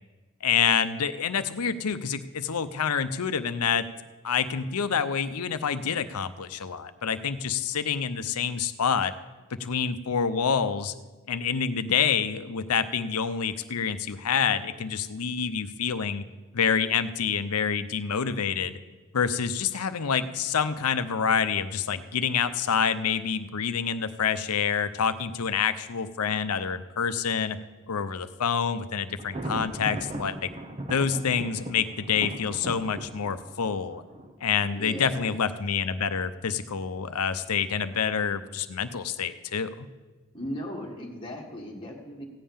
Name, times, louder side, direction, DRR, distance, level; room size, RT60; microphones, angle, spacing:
voice 1, 0.4-3.9 4.2-9.1 9.5-10.9 11.3-16.2 16.5-18.8 19.1-27.6 27.9-30.5 30.9-34.0 34.4-39.9, left 7 dB, 90° left, 12 dB, 0.6 m, -27 dB
Thunder, 29.2-35.0, right 1 dB, 25° right, 0.8 m, -38 dB
voice 2, 34.7-35.4 40.3-42.2, equal, 20° left, -1 dB, 1.7 m, -37 dB
15.5 x 5.5 x 8.7 m, 1.3 s
head